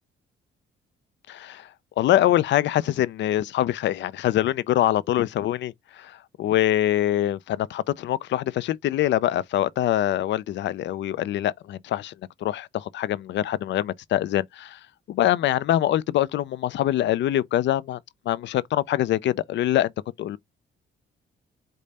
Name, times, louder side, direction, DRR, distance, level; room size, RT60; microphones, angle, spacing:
voice 1, 1.3-1.7 2.0-12.1 12.4-14.8 15.1-18.0 18.3-19.9 20.2-20.4, left 13 dB, 65° left, 0.4 m, -24 dB
5.0 x 2.2 x 4.1 m
cardioid pair, 90°, 20 cm